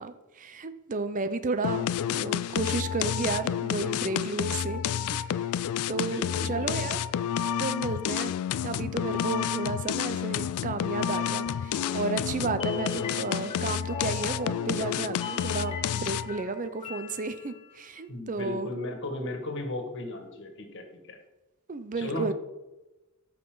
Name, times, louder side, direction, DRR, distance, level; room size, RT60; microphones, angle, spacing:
voice 1, 0.0-4.8 5.1-5.2 5.6-7.0 7.6-8.3 8.6-18.7 21.7-22.3, right 3 dB, 35° right, 11 dB, 0.5 m, -33 dB
sound 1, 1.6-16.4, left 9 dB, 80° left, 0.3 m, -30 dB
voice 2, 5.9-6.9 18.1-21.2 22.0-22.3, left 1 dB, 55° left, 4 dB, 1.8 m, -36 dB
sound 2, 11.7-17.8, left 3 dB, 25° left, 1.2 m, -40 dB
13.0 x 5.9 x 3.9 m, 1.0 s
head